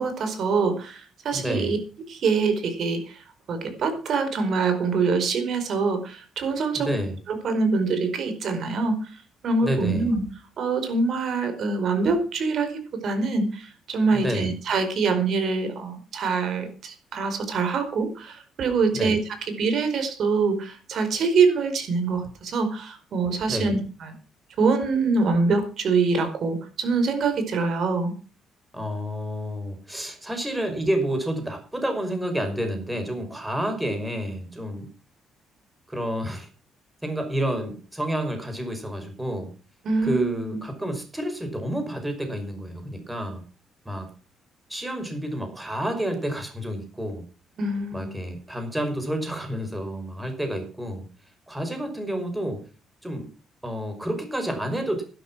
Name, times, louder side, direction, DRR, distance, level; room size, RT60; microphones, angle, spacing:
voice 1, 0.0-1.8 2.1-6.9 7.4-9.0 9.4-10.2 10.6-19.2 19.6-24.1 24.6-28.2 39.8-40.4 47.6-48.2, right 4 dB, 65° right, 8 dB, 4.7 m, -24 dB
voice 2, 1.3-1.8 6.8-7.2 9.6-10.1 14.1-14.5 18.9-19.2 23.5-23.7 28.7-34.9 35.9-36.5 37.0-39.5 40.0-43.4 43.9-44.1 44.7-47.2 47.9-51.1 51.5-52.6 53.0-53.3 53.6-55.0, equal, 10° right, 5 dB, 5.5 m, -29 dB
12.0 x 11.5 x 6.1 m, 0.36 s
cardioid pair, 90°, 0 cm